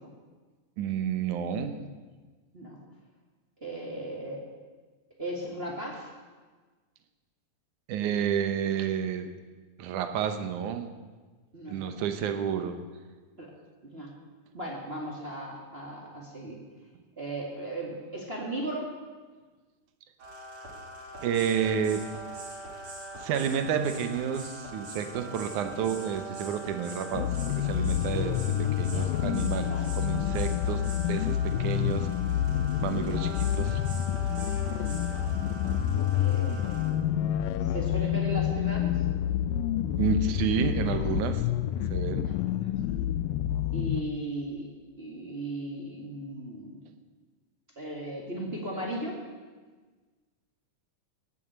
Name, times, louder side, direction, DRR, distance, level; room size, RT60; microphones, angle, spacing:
voice 1, 0.8-1.8 7.9-9.3 9.8-10.9 11.7-12.8 21.2-22.0 23.2-32.1 32.8-33.8 40.0-41.4 41.9-42.2, right 7 dB, 70° right, 8 dB, 2.3 m, -30 dB
voice 2, 3.6-4.5 5.2-6.1 11.5-11.9 13.4-13.5 13.8-14.1 14.5-16.6 17.2-18.9 28.8-29.1 29.5-29.9 34.7-35.5 36.1-36.6 37.6-39.0 42.2-42.7 43.7-44.7 45.0-46.8 47.7-49.2, right 1 dB, 25° right, -2 dB, 1.4 m, -37 dB
sound 1, 20.2-36.9, right 1 dB, 50° right, 3.8 m, -42 dB
sound 2, 27.1-44.0, left 11 dB, 90° left, 2.3 m, -28 dB
17.5 x 7.2 x 8.1 m, 1.4 s
omnidirectional pair, 3.9 m